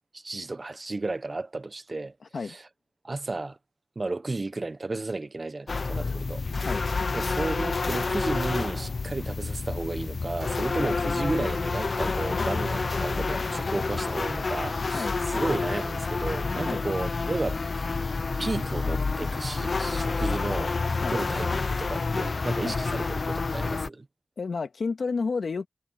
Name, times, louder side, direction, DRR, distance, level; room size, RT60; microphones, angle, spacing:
voice 1, 0.1-2.1 2.4-2.6 3.0-3.6 3.9-6.4 7.1-18.1 18.4-20.7 21.1-24.0, right 3 dB, 45° right, 1.2 m, -33 dB
sound 1, 5.7-23.9, left 4 dB, 60° left, 0.8 m, -29 dB
voice 2, 6.5-6.8 10.6-10.9 14.8-15.1 16.6-16.8 21.0-21.2 22.6-22.8 24.4-25.7, left 4 dB, 75° left, 2.4 m, -31 dB
cardioid pair, 50°, 0 cm